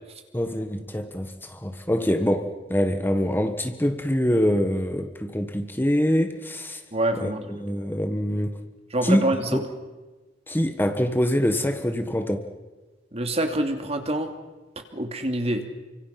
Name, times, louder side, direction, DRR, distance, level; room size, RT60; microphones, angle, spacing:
voice 1, 0.3-6.8 7.2-8.6 9.0-9.6 10.5-12.5, equal, 10° left, 1.4 m, -25 dB
voice 2, 6.9-7.5 8.9-9.6 13.1-14.3 14.9-15.6, right 1 dB, 35° right, 2.7 m, -26 dB
29.5 x 25.0 x 5.9 m
head